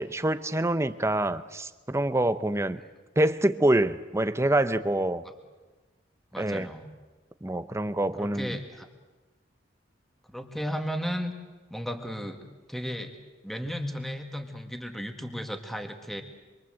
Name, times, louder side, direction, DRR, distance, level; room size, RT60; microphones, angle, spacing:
voice 1, 0.0-2.8 3.2-5.2 6.4-6.7 7.4-8.5, right 1 dB, 15° right, 12 dB, 0.9 m, -26 dB
voice 2, 6.3-6.9 8.2-8.9 10.3-11.3 11.7-13.2 13.4-16.2, equal, ahead, 5 dB, 1.9 m, -34 dB
26.5 x 24.0 x 7.9 m, 1.2 s
head